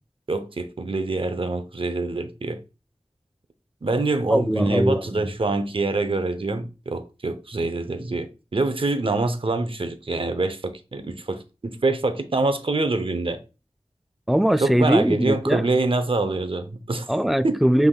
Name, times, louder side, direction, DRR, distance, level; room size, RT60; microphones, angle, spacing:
voice 1, 0.3-2.6 3.8-13.4 14.6-17.1 17.4-17.6, right 3 dB, 50° right, 0.6 m, -25 dB
voice 2, 4.3-5.3 14.3-15.6 17.1-17.9, right 1 dB, ahead, 0.3 m, -21 dB
5.8 x 3.5 x 2.3 m
wide cardioid pair, 50°, 11 cm